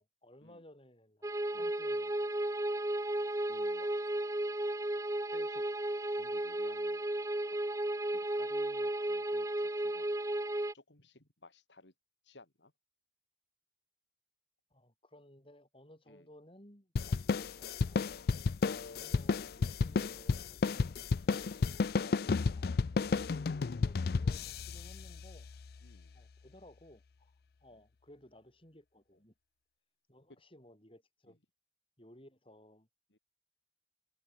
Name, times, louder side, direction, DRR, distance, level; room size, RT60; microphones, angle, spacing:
voice 1, 0.0-2.4 14.7-18.1 18.8-22.7 23.7-25.5 26.1-27.3 27.6-29.3 30.1-31.4 32.0-32.9, left 1 dB, 30° left, 7.4 m, -59 dB
sound 1, 1.2-10.7, right 1 dB, 20° right, 0.9 m, -34 dB
voice 2, 3.5-4.2 5.3-5.6 6.1-7.2 7.5-7.6 8.1-10.1 10.7-11.9 12.2-12.7 16.1-16.3 25.8-26.2 31.3-31.4 33.1-33.2, left 2 dB, 90° left, 4.0 m, -58 dB
sound 2, 17.0-25.8, left 4 dB, 60° left, 0.4 m, -32 dB
head